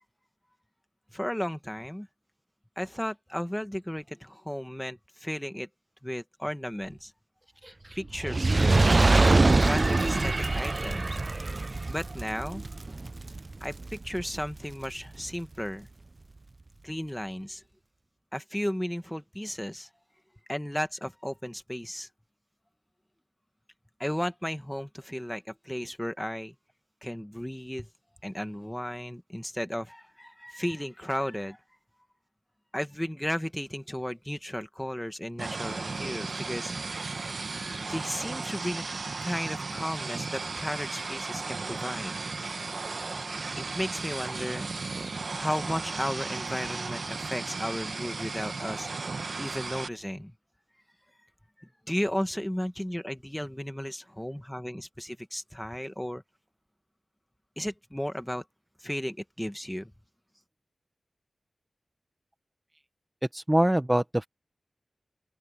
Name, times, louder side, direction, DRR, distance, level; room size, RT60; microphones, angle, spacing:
voice 1, 1.1-2.1 2.8-5.7 6.0-7.1 7.9-11.2 11.9-12.6 13.6-15.9 16.8-17.6 18.3-19.9 20.5-22.1 24.0-26.5 27.0-27.9 28.2-31.6 32.7-38.8 39.2-42.1 43.7-44.7 45.3-48.9 49.4-50.3 51.6-56.2 57.6-58.4 58.8-59.9, equal, 5° left, 1.7 m, -34 dB
voice 2, 7.6-8.0 63.3-64.3, right 1 dB, 15° right, 1.0 m, -25 dB
Fire, 8.1-14.6 15.3-15.4, right 3 dB, 40° right, 0.3 m, -24 dB
sound 1, 35.4-49.9, right 4 dB, 65° right, 1.1 m, -35 dB
open air
wide cardioid pair, 75°, 0 cm